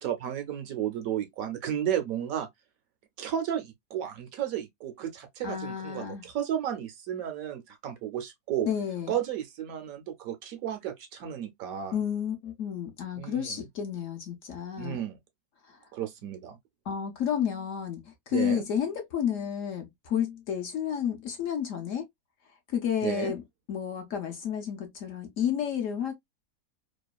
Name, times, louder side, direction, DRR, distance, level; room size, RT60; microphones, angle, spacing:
voice 1, 0.0-2.5 3.2-8.7 9.1-12.0 13.2-13.6 14.8-15.2 15.9-16.6 18.3-18.7 23.0-23.3, right 10 dB, 70° right, 0.9 m, -33 dB
voice 2, 5.4-6.2 8.6-9.2 11.9-15.0 15.7-15.8 16.9-22.1 22.7-23.4 23.7-26.1, left 8 dB, 65° left, 0.9 m, -31 dB
3.0 x 2.2 x 2.2 m
omnidirectional pair, 1.7 m